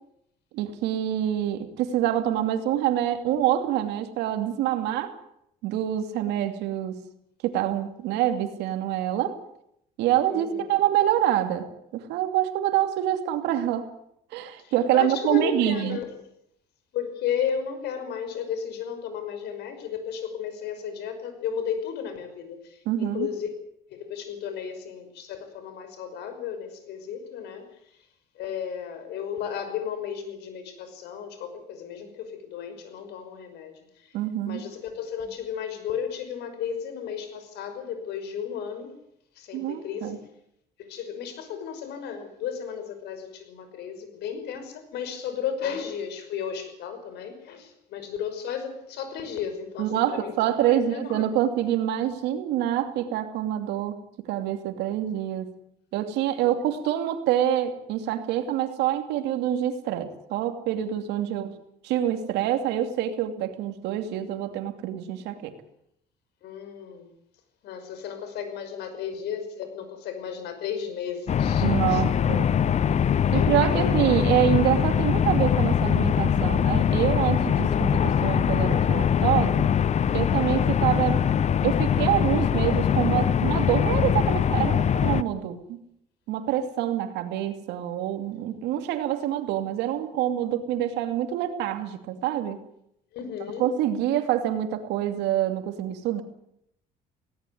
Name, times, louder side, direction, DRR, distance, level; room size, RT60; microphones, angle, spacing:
voice 1, 0.5-5.1 5.6-7.0 7.4-9.4 10.0-13.9 14.3-16.0 22.9-23.3 34.1-34.6 39.5-40.2 49.8-55.5 55.9-61.5 61.8-65.5 71.6-72.5 73.3-79.7 80.1-81.2 81.6-85.8 86.3-92.6 93.6-96.2, right 11 dB, 90° right, 8 dB, 2.7 m, -26 dB
voice 2, 10.3-10.6 14.6-16.1 16.9-23.5 23.9-27.6 27.9-28.0 28.4-34.1 34.4-39.0 39.4-40.2 40.8-50.3 50.7-51.3 56.4-56.5 66.4-67.1 67.6-72.0 72.9-73.0 73.3-73.9 93.1-93.7, left 8 dB, 80° left, 9 dB, 5.6 m, -34 dB
sound 1, 71.3-85.2, left 8 dB, 40° left, 0.9 m, -22 dB
19.0 x 18.0 x 9.5 m, 0.75 s
cardioid pair, 110°, 17 cm